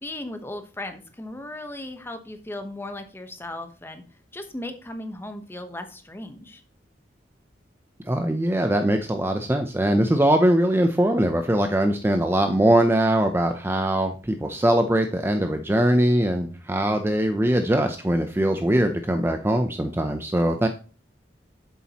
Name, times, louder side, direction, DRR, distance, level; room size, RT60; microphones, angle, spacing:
voice 1, 0.0-4.0 4.3-6.6, left 1 dB, 15° left, 7 dB, 0.9 m, -36 dB
voice 2, 8.1-20.7, right 1 dB, 15° right, 6 dB, 0.5 m, -21 dB
8.4 x 7.2 x 2.9 m, 0.38 s
head